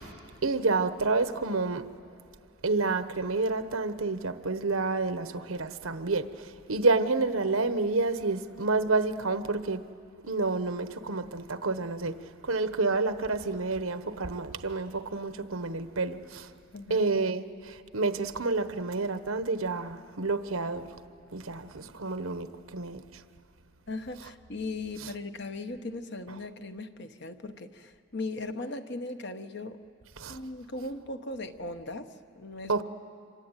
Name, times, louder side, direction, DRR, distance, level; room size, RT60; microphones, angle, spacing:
voice 1, 0.4-1.9 2.6-9.8 10.2-12.1 12.4-16.5 16.9-20.9 21.3-23.0 30.2-30.4 32.7-32.8, right 3 dB, 85° right, 1.2 m, -29 dB
voice 2, 16.7-17.1 23.9-29.8 30.3-32.7, left 2 dB, 55° left, 1.1 m, -38 dB
27.0 x 24.0 x 9.0 m
head